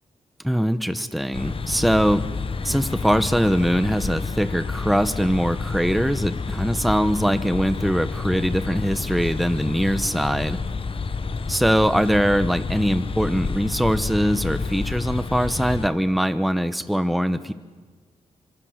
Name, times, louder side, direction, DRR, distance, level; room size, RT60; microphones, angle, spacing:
voice 1, 0.4-2.2 2.6-10.6 11.5-17.5, equal, ahead, 11 dB, 1.1 m, -22 dB
sound 1, 1.3-15.9, left 4 dB, 45° left, 1.3 m, -29 dB
26.5 x 26.0 x 6.6 m, 1.5 s
cardioid pair, 75°, 12 cm